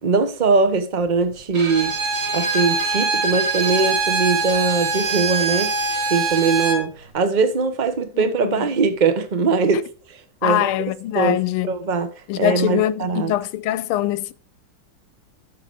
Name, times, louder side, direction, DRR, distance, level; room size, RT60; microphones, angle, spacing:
voice 1, 0.0-1.9 2.3-5.7 6.1-10.7 11.1-11.4 11.7-12.1 12.4-13.3, right 4 dB, 35° right, 0.8 m, -21 dB
Bowed string instrument, 1.5-6.8, right 4 dB, 60° right, 2.9 m, -23 dB
voice 2, 8.1-8.7 10.4-11.7 12.3-14.3, left 13 dB, 85° left, 1.5 m, -23 dB
9.9 x 6.8 x 4.7 m
omnidirectional pair, 2.4 m